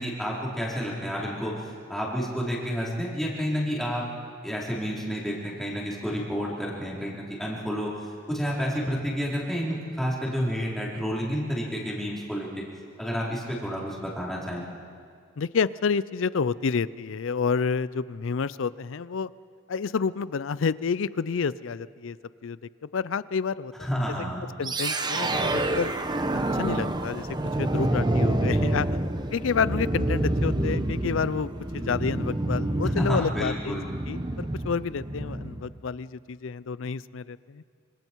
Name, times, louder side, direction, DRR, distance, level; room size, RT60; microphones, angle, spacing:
voice 1, 0.0-4.0 4.4-7.9 8.3-12.6 13.0-14.6 23.8-24.4 32.9-33.9, equal, ahead, -6 dB, 4.1 m, -30 dB
voice 2, 15.4-19.3 19.7-22.2 22.4-22.6 22.9-23.9 24.6-25.9 26.5-27.3 27.6-28.9 29.3-33.8 34.1-37.6, left 5 dB, 65° left, 18 dB, 0.5 m, -29 dB
sound 1, 24.6-35.7, right 1 dB, 20° right, 0.8 m, -28 dB
26.0 x 25.5 x 4.6 m, 2.2 s
head